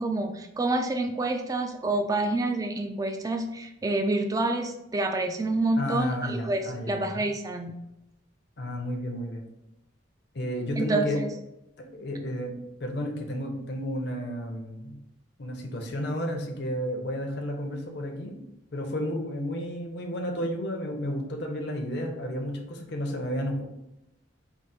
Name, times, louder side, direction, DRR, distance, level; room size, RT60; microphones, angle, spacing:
voice 1, 0.0-7.7 10.8-11.3, right 2 dB, 20° right, 5 dB, 0.3 m, -28 dB
voice 2, 5.8-7.3 8.6-9.4 10.3-11.2 11.8-12.5 12.8-15.0 15.4-18.4 18.7-23.6, equal, 60° left, 2 dB, 0.7 m, -32 dB
4.7 x 2.0 x 4.1 m, 0.88 s
head